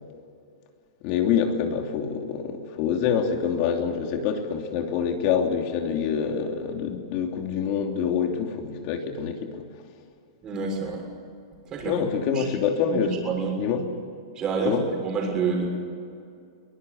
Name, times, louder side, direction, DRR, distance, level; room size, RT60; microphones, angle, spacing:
voice 1, 1.0-9.5 11.8-13.1 13.6-13.8 14.6-14.8, left 7 dB, 45° left, 4 dB, 3.0 m, -26 dB
voice 2, 10.4-11.0 11.7-12.0 12.3-12.5 12.9-13.5 14.3-14.8 15.0-15.7, right 5 dB, 25° right, 1 dB, 6.4 m, -28 dB
23.0 x 20.0 x 8.3 m, 2.4 s
hypercardioid pair, 140°, 3 cm